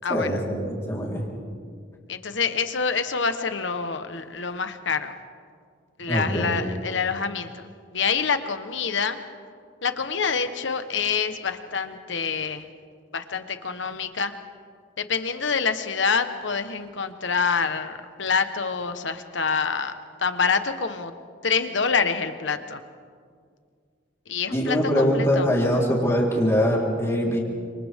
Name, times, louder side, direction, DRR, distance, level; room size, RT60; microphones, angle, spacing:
voice 1, 0.1-1.2 6.1-6.6 24.5-27.4, equal, 15° left, -4 dB, 4.2 m, -23 dB
voice 2, 2.1-5.1 6.0-7.6 7.9-9.2 9.8-12.7 13.1-14.3 15.0-19.9 20.2-21.1 21.4-22.8 24.3-25.5, left 5 dB, 70° left, 9 dB, 1.3 m, -26 dB
30.0 x 26.5 x 3.7 m, 2.1 s
head